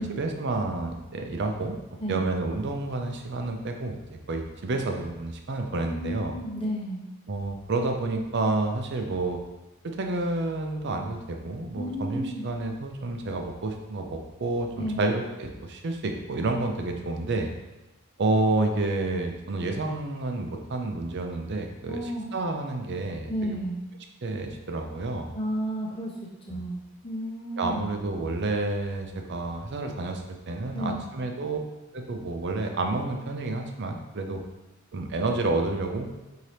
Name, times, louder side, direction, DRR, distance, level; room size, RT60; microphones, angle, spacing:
voice 1, 0.0-1.8 2.1-6.4 7.3-9.4 9.8-17.5 18.2-23.6 24.2-25.3 26.5-26.6 27.6-31.6 31.9-34.4 34.9-36.1, right 2 dB, 50° right, 4 dB, 0.5 m, -29 dB
voice 2, 5.8-7.0 11.7-12.5 14.8-15.1 21.9-22.3 23.3-23.8 25.3-26.1 26.5-26.8 27.0-27.9 30.7-31.1, equal, 25° left, -5 dB, 0.9 m, -32 dB
5.4 x 2.8 x 3.2 m, 1.0 s
head